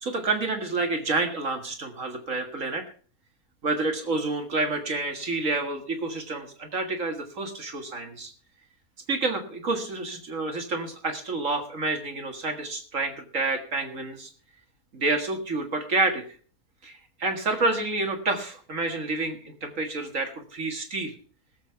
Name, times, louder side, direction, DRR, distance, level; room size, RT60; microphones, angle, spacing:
voice 1, 0.0-2.8 3.6-8.3 9.1-14.3 14.9-16.4 16.8-21.1, right 3 dB, 55° right, 5 dB, 2.1 m, -29 dB
17.0 x 7.8 x 5.7 m, 0.42 s
omnidirectional pair, 1.7 m